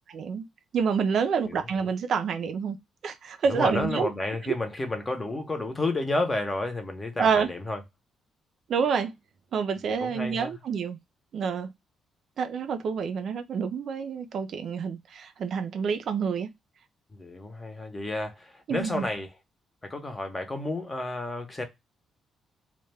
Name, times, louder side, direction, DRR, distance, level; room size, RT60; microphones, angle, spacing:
voice 1, 0.1-0.5 0.7-2.8 3.0-4.1 7.2-7.5 8.7-9.1 9.5-11.0 11.3-11.7 12.4-16.5 18.7-19.1, right 6 dB, 65° right, 0.3 m, -28 dB
voice 2, 3.5-7.8 9.8-10.6 17.1-19.3 19.8-21.6, left 2 dB, 25° left, 0.7 m, -31 dB
2.2 x 2.1 x 3.2 m
cardioid pair, 80°, 0 cm